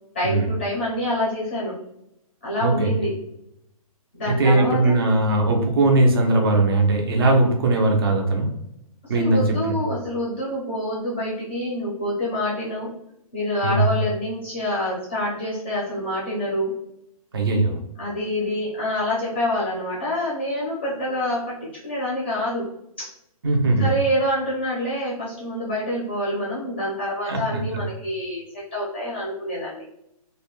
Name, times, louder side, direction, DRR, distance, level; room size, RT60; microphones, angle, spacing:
voice 1, 0.1-1.8 2.4-3.1 4.1-5.0 9.0-12.9 13.3-16.8 18.0-22.7 23.0-23.1 23.8-29.8, left 1 dB, 20° left, -7 dB, 0.5 m, -26 dB
voice 2, 2.6-2.9 4.3-8.5 9.1-9.7 13.6-13.9 17.3-17.8 23.4-23.9 27.3-27.6, right 2 dB, 40° right, 1 dB, 0.5 m, -19 dB
2.5 x 2.1 x 2.9 m, 0.80 s
hypercardioid pair, 175°, 19 cm